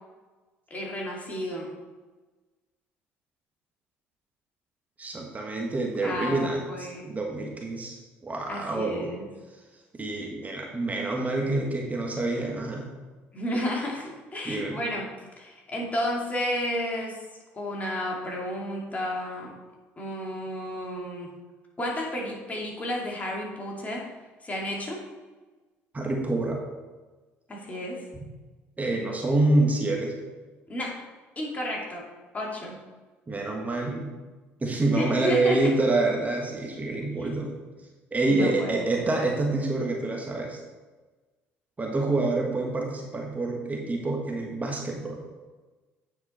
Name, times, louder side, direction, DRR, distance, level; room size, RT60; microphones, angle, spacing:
voice 1, 0.7-1.7 6.0-7.2 8.5-9.3 13.3-15.1 15.4-17.2 17.5-19.5 20.0-21.3 21.8-24.0 24.4-25.0 27.5-28.0 30.7-30.9 31.4-32.0 32.3-32.8 34.9-35.7 37.2-37.3 38.3-39.3, left 1 dB, 25° left, -2 dB, 2.4 m, -32 dB
voice 2, 5.0-9.1 9.9-12.9 14.4-14.8 25.9-26.6 28.8-30.1 33.3-34.1 34.6-37.5 38.1-40.6 41.8-45.2, right 2 dB, 25° right, 0 dB, 1.4 m, -27 dB
8.9 x 4.7 x 4.3 m, 1.3 s
supercardioid pair, 70°, 6 cm